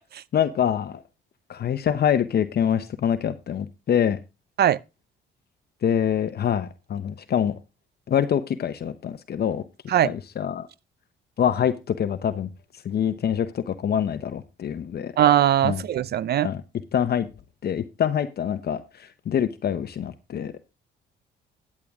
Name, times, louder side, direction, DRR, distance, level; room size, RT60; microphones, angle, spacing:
voice 1, 0.3-1.0 1.5-4.2 5.8-7.5 8.1-9.6 10.0-10.7 11.4-12.5 12.8-15.1 15.6-15.8 16.4-16.6 16.9-17.3 17.6-20.5, left 9 dB, 55° left, 0.8 m, -25 dB
voice 2, 15.2-16.5, right 11 dB, 55° right, 0.5 m, -20 dB
10.5 x 8.4 x 3.5 m
cardioid pair, 90°, 20 cm